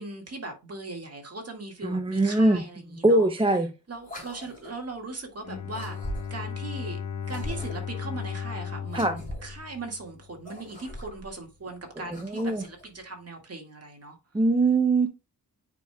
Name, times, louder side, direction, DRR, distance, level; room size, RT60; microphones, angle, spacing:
voice 1, 0.0-3.3 3.9-6.0 6.3-7.0 7.3-14.2, right 3 dB, 40° right, 1.9 m, -39 dB
voice 2, 1.8-2.6 3.0-3.7 8.9-9.2 12.2-12.6 14.3-15.1, right 2 dB, 15° right, 0.5 m, -22 dB
sound 1, 4.0-4.9 5.7-6.5 7.2-8.0 8.9-9.6 10.3-11.3 11.9-12.8, equal, 20° left, 3.3 m, -40 dB
Bowed string instrument, 5.4-10.4, left 7 dB, 50° left, 0.6 m, -36 dB
9.0 x 5.1 x 2.2 m
wide cardioid pair, 135°, 38 cm